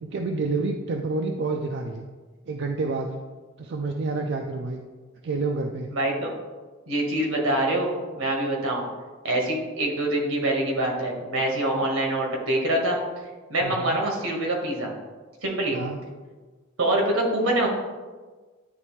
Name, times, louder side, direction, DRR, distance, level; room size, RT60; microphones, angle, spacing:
voice 1, 0.0-2.0 2.5-3.1 3.6-4.8 5.2-5.9 13.6-14.0 15.7-16.0, right 3 dB, 60° right, 3 dB, 0.4 m, -28 dB
voice 2, 5.9-6.3 6.9-8.8 9.2-13.0 13.5-14.9 15.4-15.8 16.8-17.7, right 1 dB, 85° right, 0 dB, 1.4 m, -25 dB
9.5 x 3.2 x 3.1 m, 1.3 s
head